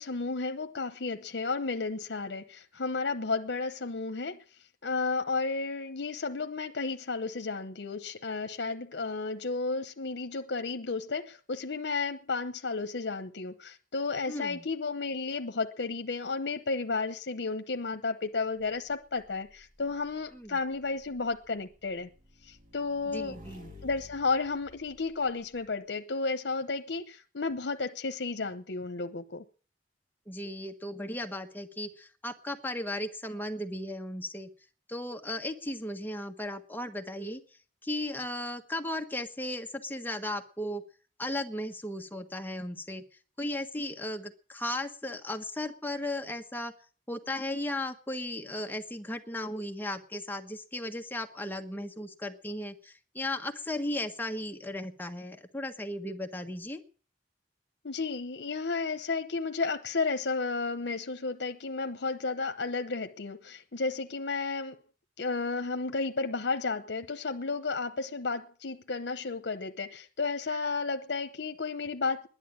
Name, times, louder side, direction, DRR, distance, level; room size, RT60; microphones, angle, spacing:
voice 1, 0.0-4.4 4.8-22.1 22.4-23.4 23.8-29.4 57.8-64.8 65.2-72.3, left 4 dB, 85° left, 0.9 m, -32 dB
voice 2, 14.3-14.6 20.3-20.6 23.0-23.7 30.3-34.5 34.9-37.4 37.8-40.8 41.2-43.0 43.4-46.7 47.1-56.8, left 1 dB, 10° left, 1.4 m, -36 dB
Motorcycle / Engine, 18.6-25.7, left 1 dB, 50° right, 3.1 m, -54 dB
12.0 x 11.0 x 8.7 m
head